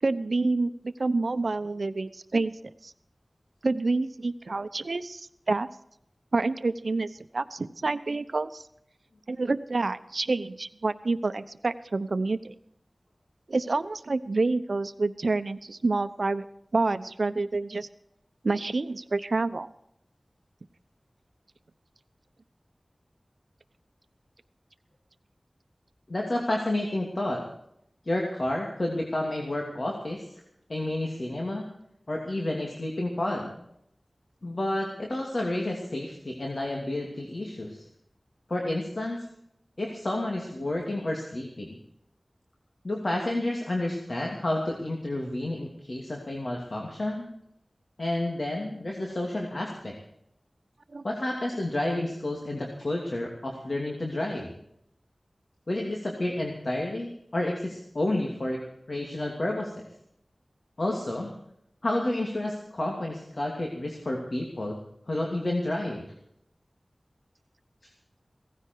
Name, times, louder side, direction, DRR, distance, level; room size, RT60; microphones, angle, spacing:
voice 1, 0.0-2.5 2.8-2.9 3.6-5.7 6.3-8.6 9.3-12.5 13.5-16.4 16.7-17.9 18.4-19.7 50.9-51.0, right 3 dB, 75° right, 13 dB, 0.8 m, -28 dB
voice 2, 26.1-27.4 28.0-30.3 30.7-31.7 32.1-33.5 34.4-37.9 38.5-39.3 39.8-41.8 42.8-47.3 48.0-50.0 51.0-54.5 55.7-58.6 58.9-59.8 60.8-61.3 61.8-64.8 65.1-66.0, left 1 dB, 60° left, 0 dB, 2.7 m, -30 dB
17.0 x 15.0 x 4.7 m, 0.75 s
wide cardioid pair, 55°, 0 cm